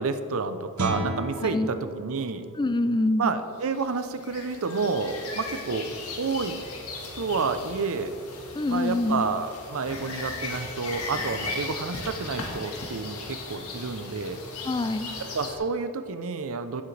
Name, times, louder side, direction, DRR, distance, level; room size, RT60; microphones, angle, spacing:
voice 1, 0.0-2.5 3.2-5.9 6.2-6.6 7.2-8.1 8.7-14.4 15.2-16.8, right 4 dB, 65° right, 10 dB, 0.6 m, -29 dB
Guitar, 0.7-6.3, right 2 dB, 90° right, 1.2 m, -37 dB
voice 2, 2.6-3.3 8.5-9.2 14.6-15.1, left 2 dB, 20° left, 11 dB, 0.3 m, -25 dB
sound 1, 3.6-15.6, left 3 dB, 75° left, 1.7 m, -37 dB
16.0 x 7.3 x 3.3 m, 2.3 s
head